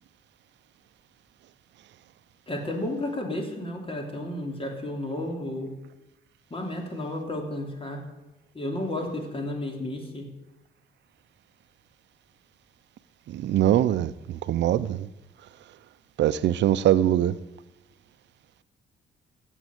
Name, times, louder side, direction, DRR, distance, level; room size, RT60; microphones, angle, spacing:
voice 1, 2.5-5.7 6.5-8.0 8.5-10.3, left 1 dB, 25° left, 3.0 m, -32 dB
voice 2, 13.3-15.1 16.2-17.4, right 12 dB, 65° right, 0.5 m, -23 dB
15.0 x 7.3 x 7.8 m
cardioid pair, 90°, 20 cm